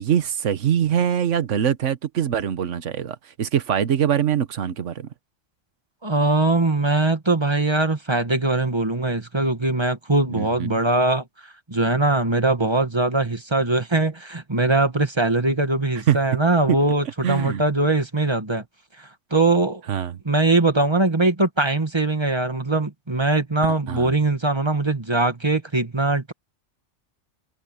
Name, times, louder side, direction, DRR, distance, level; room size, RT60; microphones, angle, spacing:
voice 1, 0.0-5.1 10.3-10.8 16.1-16.2 16.7-16.8 17.2-17.6 19.9-20.1 23.9-24.1, right 9 dB, 80° right, 1.3 m, -23 dB
voice 2, 6.0-18.6 19.0-19.8 20.3-26.3, right 2 dB, 20° right, 1.8 m, -21 dB
open air
omnidirectional pair, 1.3 m